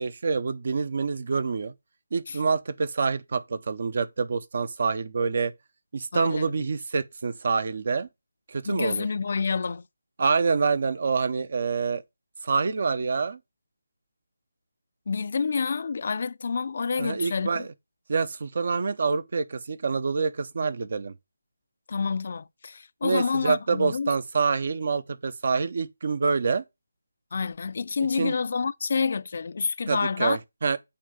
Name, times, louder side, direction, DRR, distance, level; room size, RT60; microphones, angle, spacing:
voice 1, 0.0-1.7 2.1-5.5 5.9-8.1 8.5-9.1 10.2-12.0 12.4-13.4 17.0-17.7 18.1-21.2 23.0-26.6 28.1-28.3 29.9-30.8, right 4 dB, 50° right, 0.7 m, -26 dB
voice 2, 6.1-6.7 8.6-9.9 15.1-17.7 21.9-24.1 27.3-30.4, left 5 dB, 50° left, 0.4 m, -28 dB
8.5 x 3.2 x 5.2 m
figure-of-eight pair, 155°, 0 cm